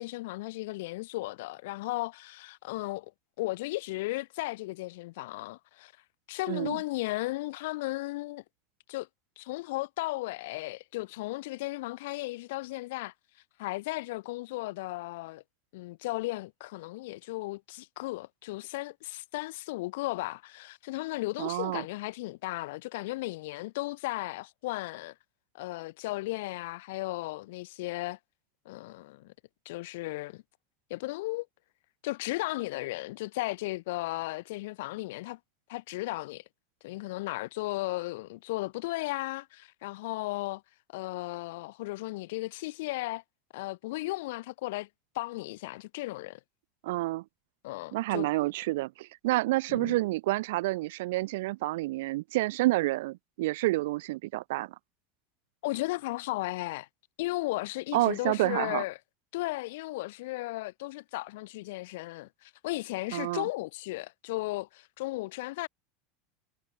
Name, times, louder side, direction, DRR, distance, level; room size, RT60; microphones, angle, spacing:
voice 1, 0.0-3.1 3.4-5.9 6.3-8.4 8.9-9.1 9.4-13.1 13.6-15.4 15.7-25.1 25.5-28.2 28.7-29.3 29.7-30.4 30.9-31.5 32.0-35.4 35.7-36.4 36.8-40.6 40.9-43.2 43.5-44.9 45.1-46.4 47.6-48.3 49.7-50.0 55.6-56.9 57.2-59.0 59.3-65.7, left 20 dB, 70° left, 5.4 m, -35 dB
voice 2, 21.4-21.8 46.8-47.2 47.9-54.7 57.9-58.8 63.1-63.5, right 19 dB, 70° right, 4.6 m, -29 dB
supercardioid pair, 165°, 0 cm